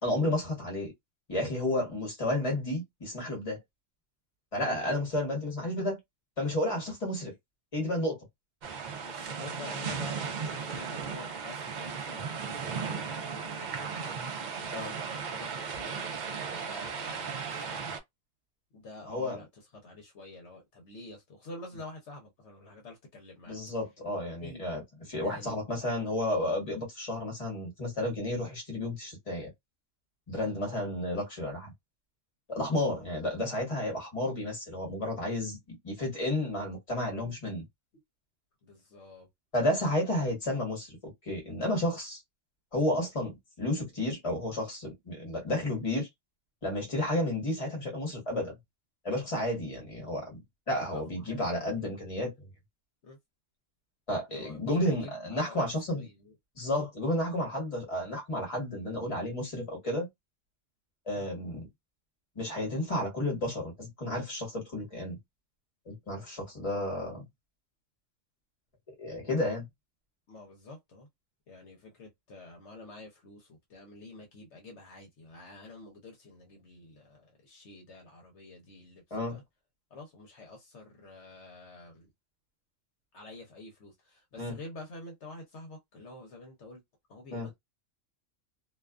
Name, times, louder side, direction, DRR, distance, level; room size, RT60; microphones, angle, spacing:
voice 1, 0.0-0.9 1.3-3.6 4.5-6.0 6.4-7.3 7.7-8.2 14.7-14.9 19.0-19.4 23.5-24.8 25.1-29.5 30.3-31.7 32.5-37.6 39.5-42.2 42.7-46.1 46.6-48.5 49.0-50.4 50.7-52.5 54.1-56.0 56.6-60.1 61.1-61.7 62.3-65.2 65.9-67.3 69.0-69.7 79.1-79.4 84.4-84.6 87.3-87.5, left 1 dB, 30° left, 1.2 m, -32 dB
voice 2, 4.6-4.9 9.0-14.9 15.2-18.0 18.7-19.5 19.8-23.6 24.4-24.7 25.0-25.6 32.9-33.0 33.6-33.7 38.6-39.3 50.9-51.7 53.0-53.2 54.3-56.3 61.2-61.3 70.3-71.1 71.5-79.4 79.9-82.1 83.1-86.8 87.1-87.5, left 2 dB, 70° left, 1.0 m, -48 dB
sound 1, 8.6-18.0, right 6 dB, 60° right, 0.5 m, -36 dB
2.5 x 2.3 x 2.3 m
omnidirectional pair, 1.3 m